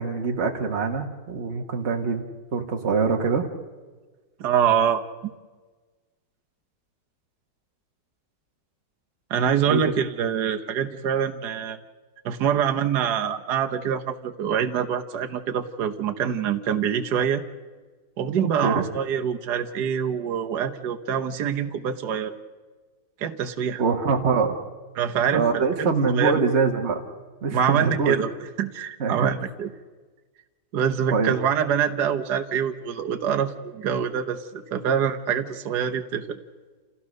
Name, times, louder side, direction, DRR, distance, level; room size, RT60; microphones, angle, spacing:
voice 1, 0.0-2.2 2.5-3.5 9.7-9.9 18.6-18.9 23.8-24.6 25.3-27.0 27.4-28.2 29.0-29.3 31.1-31.4, right 5 dB, 40° right, 3 dB, 1.8 m, -24 dB
voice 2, 4.4-5.0 9.3-11.8 12.2-17.4 18.2-22.3 23.2-23.8 25.0-25.5 25.8-25.9 26.1-26.3 27.5-28.3 28.6-29.7 30.7-36.4, right 8 dB, 70° right, 5 dB, 1.6 m, -25 dB
28.0 x 16.0 x 6.6 m, 1.4 s
omnidirectional pair, 1.9 m